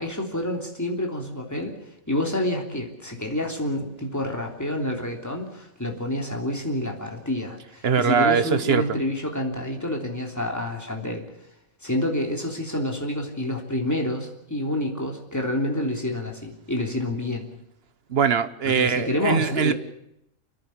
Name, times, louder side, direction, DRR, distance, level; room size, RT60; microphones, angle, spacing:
voice 1, 0.0-1.8 2.1-11.3 11.8-17.5 18.6-19.7, left 1 dB, 10° left, 3.2 m, -28 dB
voice 2, 7.8-8.8 18.1-19.7, right 7 dB, 50° right, 1.1 m, -22 dB
29.0 x 10.5 x 9.7 m
omnidirectional pair, 1.4 m